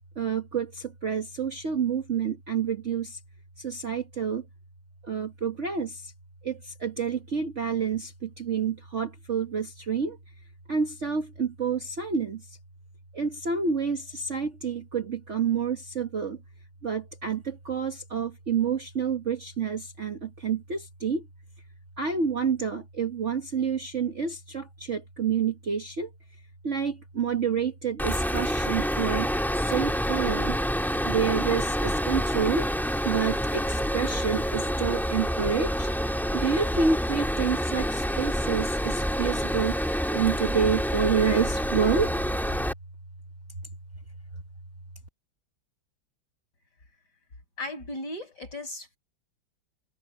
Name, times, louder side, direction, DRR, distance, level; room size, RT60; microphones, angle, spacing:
voice 1, 0.2-3.2 3.6-4.4 5.0-6.1 6.4-10.2 10.7-12.6 13.1-16.4 16.8-21.3 22.0-26.1 26.6-30.6 31.0-32.7 33.0-35.9 36.3-39.8 40.1-42.2, right 6 dB, 40° right, 1.6 m, -28 dB
sound 1, 28.0-42.7, equal, ahead, 1.9 m, -27 dB
voice 2, 47.6-49.0, left 1 dB, 55° left, 7.5 m, -36 dB
omnidirectional pair, 2.1 m